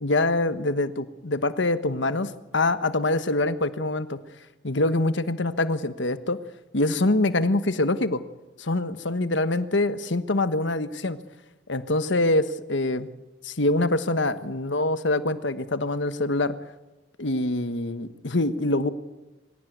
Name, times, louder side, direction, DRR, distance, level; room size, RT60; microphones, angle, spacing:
voice 1, 0.0-4.2 4.6-6.4 6.7-8.2 8.6-11.2 11.7-13.1 13.4-16.5 17.2-18.9, left 2 dB, 75° left, 12 dB, 1.4 m, -24 dB
25.5 x 17.0 x 9.4 m, 1.1 s
head